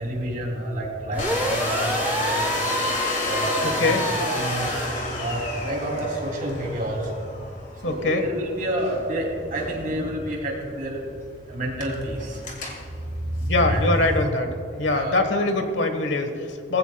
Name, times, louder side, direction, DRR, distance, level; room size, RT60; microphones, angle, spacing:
voice 1, 0.0-2.7 3.3-4.7 5.2-7.3 7.8-11.0 11.5-12.4 13.0-14.1 14.8-15.2, right 1 dB, 50° right, -1 dB, 3.0 m, -29 dB
sound 1, 1.1-4.9, right 1 dB, 10° right, 1.0 m, -28 dB
Domestic sounds home sounds, 1.2-14.3, left 2 dB, 45° left, 2.0 m, -32 dB
voice 2, 3.6-4.0 7.8-8.2 13.4-14.5 14.8-16.8, left 2 dB, 85° left, 6 dB, 1.3 m, -23 dB
20.0 x 15.5 x 2.3 m, 2.4 s
head